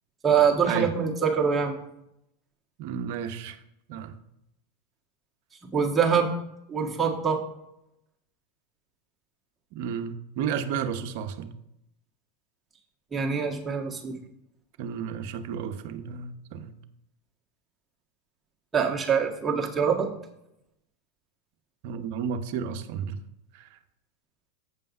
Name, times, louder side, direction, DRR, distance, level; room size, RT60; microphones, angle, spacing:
voice 1, 0.2-1.7 5.7-6.3 6.7-7.4 13.1-14.2 18.7-20.1, right 6 dB, 20° right, -1 dB, 1.7 m, -24 dB
voice 2, 2.8-3.6 3.9-4.1 9.7-11.5 14.8-16.7 21.8-23.2 23.5-23.6, right 7 dB, 60° right, 7 dB, 0.8 m, -32 dB
8.2 x 5.5 x 5.4 m, 0.82 s
hypercardioid pair, 95°, 0 cm